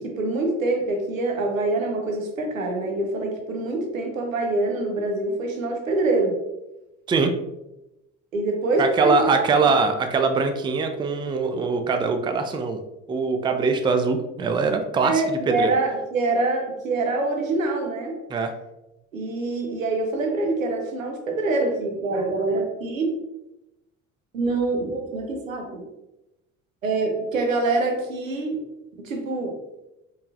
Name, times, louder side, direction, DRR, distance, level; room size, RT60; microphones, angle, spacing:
voice 1, 0.0-6.4 8.3-9.7 15.0-18.2 19.1-23.2 24.3-25.8 26.8-28.6 29.0-29.6, right 2 dB, 90° right, 2 dB, 0.8 m, -25 dB
voice 2, 8.8-12.8 13.1-15.7 18.3-18.5, right 4 dB, 15° right, 6 dB, 0.4 m, -22 dB
4.5 x 3.3 x 2.4 m, 0.92 s
figure-of-eight pair, 60°, 39 cm